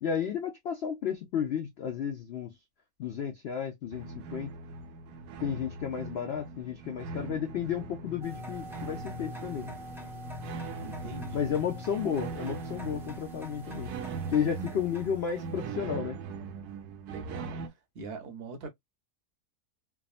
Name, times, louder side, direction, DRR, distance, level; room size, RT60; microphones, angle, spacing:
voice 1, 0.0-2.5 3.0-4.5 5.4-9.7 11.3-13.9 14.3-16.2, left 8 dB, 85° left, 0.5 m, -32 dB
sound 1, 3.9-17.7, right 4 dB, 75° right, 1.1 m, -41 dB
sound 2, 6.6-14.3, left 6 dB, 50° left, 1.0 m, -48 dB
sound 3, 8.2-15.7, right 1 dB, 5° right, 0.3 m, -47 dB
voice 2, 10.8-11.5 17.1-17.6 17.9-18.7, right 3 dB, 50° right, 0.8 m, -42 dB
3.5 x 2.0 x 2.4 m
omnidirectional pair, 1.7 m